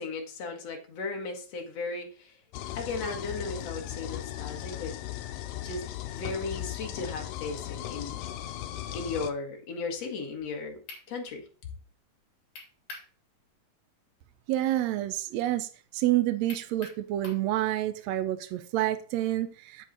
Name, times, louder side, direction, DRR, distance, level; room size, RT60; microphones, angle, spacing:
voice 1, 0.0-2.4 2.7-4.9 5.5-5.8 6.1-8.2 8.9-10.8 11.1-11.5, left 3 dB, 55° left, 2.6 m, -36 dB
sound 1, 2.5-9.3, left 13 dB, 90° left, 2.4 m, -37 dB
sound 2, 10.9-11.1 12.6-13.1 13.5-13.6 16.5-17.5, left 3 dB, 70° left, 4.4 m, -44 dB
voice 2, 14.5-15.7 15.9-19.9, right 14 dB, 85° right, 1.5 m, -28 dB
8.2 x 7.5 x 4.0 m
omnidirectional pair, 3.9 m